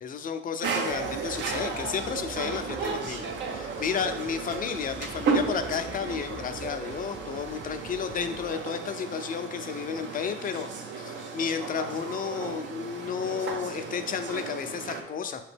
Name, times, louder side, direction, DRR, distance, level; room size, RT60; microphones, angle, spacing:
voice 1, 0.0-15.5, left 7 dB, 45° left, 8 dB, 0.4 m, -32 dB
sound 1, 0.6-15.0, right 5 dB, 70° right, 0.6 m, -34 dB
sound 2, 0.9-8.6, right 2 dB, 10° right, 0.5 m, -45 dB
5.0 x 3.0 x 3.3 m, 1.0 s
cardioid pair, 90°, 20 cm